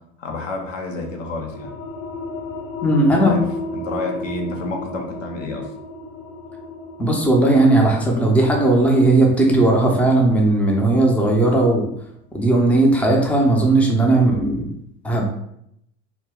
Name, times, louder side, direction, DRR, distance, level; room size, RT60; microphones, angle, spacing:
voice 1, 0.2-1.7 3.0-3.5 3.7-5.7, left 2 dB, 90° left, 1 dB, 0.6 m, -29 dB
sound 1, 0.9-12.1, left 3 dB, 45° left, 0.7 m, -34 dB
voice 2, 2.8-3.4 7.0-11.8 12.3-14.7 15.0-15.3, right 2 dB, 5° left, 0 dB, 0.5 m, -16 dB
2.2 x 2.1 x 3.5 m, 0.75 s
hypercardioid pair, 80°, 37 cm